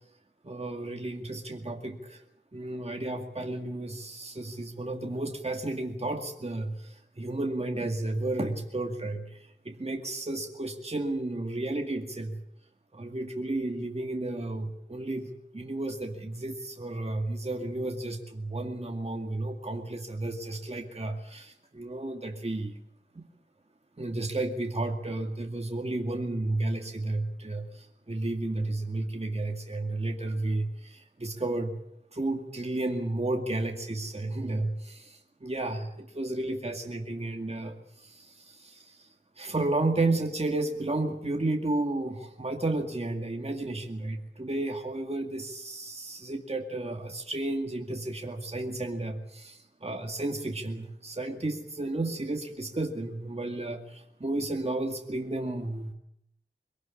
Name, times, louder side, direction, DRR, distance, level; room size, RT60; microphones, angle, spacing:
voice 1, 0.4-2.2 2.5-12.4 12.9-22.7 23.2-23.3 24.0-31.8 32.1-39.1 39.4-55.9, right 2 dB, 30° right, 2 dB, 2.2 m, -32 dB
23.0 x 17.5 x 8.7 m, 0.77 s
wide cardioid pair, 70°, 20 cm